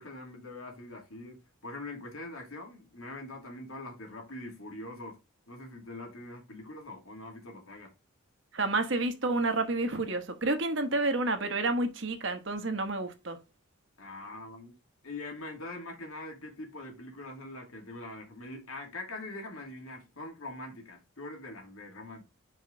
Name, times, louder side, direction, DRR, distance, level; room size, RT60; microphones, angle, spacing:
voice 1, 0.0-5.2 5.5-7.9 14.0-14.7 15.0-22.2, left 2 dB, 80° left, 2.4 m, -43 dB
voice 2, 8.5-13.4, right 2 dB, 60° right, 1.2 m, -29 dB
5.9 x 5.1 x 3.9 m
head